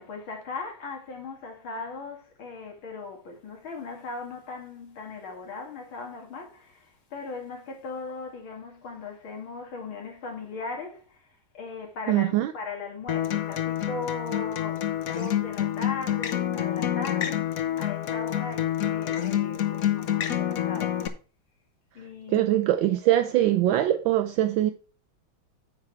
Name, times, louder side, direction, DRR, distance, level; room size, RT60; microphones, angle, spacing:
voice 1, 0.0-14.8 15.1-21.1 21.9-22.5, left 4 dB, 80° left, 2.9 m, -38 dB
voice 2, 12.1-12.5 22.3-24.7, right 13 dB, 80° right, 1.3 m, -22 dB
Acoustic guitar, 13.1-21.1, left 11 dB, 55° left, 1.0 m, -28 dB
8.9 x 5.8 x 4.6 m
omnidirectional pair, 2.2 m